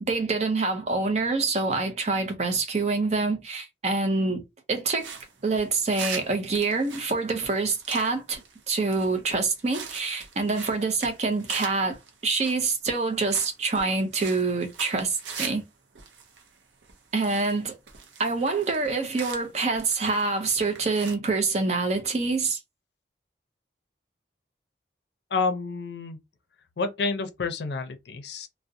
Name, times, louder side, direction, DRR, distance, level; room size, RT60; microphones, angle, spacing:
voice 1, 0.0-4.4 4.7-5.1 5.4-12.0 12.2-15.6 17.1-17.7 18.2-22.6, right 3 dB, 40° right, 0.5 m, -26 dB
sound 1, 5.0-15.6 15.9-17.6 17.9-20.3 20.6-21.1, right 5 dB, 85° right, 0.6 m, -42 dB
voice 2, 25.3-26.2 26.8-28.5, left 4 dB, 70° left, 0.5 m, -29 dB
2.4 x 2.0 x 2.6 m
head